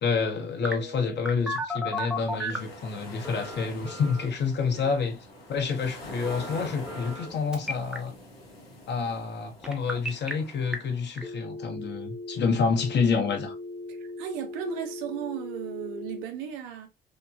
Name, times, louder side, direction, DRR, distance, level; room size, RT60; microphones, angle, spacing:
voice 1, 0.0-5.2 5.5-8.1 8.9-13.5, left 5 dB, 35° left, 0.7 m, -28 dB
Telephone, 0.6-2.7 3.2-4.3 6.3-7.3 7.5-8.0 9.6-10.3 10.7-10.8 11.2-16.2, left 1 dB, 5° right, 0.5 m, -36 dB
sound 1, 2.0-11.2, left 1 dB, 85° left, 0.6 m, -45 dB
voice 2, 13.9-16.9, right 9 dB, 60° right, 0.5 m, -36 dB
2.9 x 2.2 x 2.3 m
figure-of-eight pair, 50°, 29 cm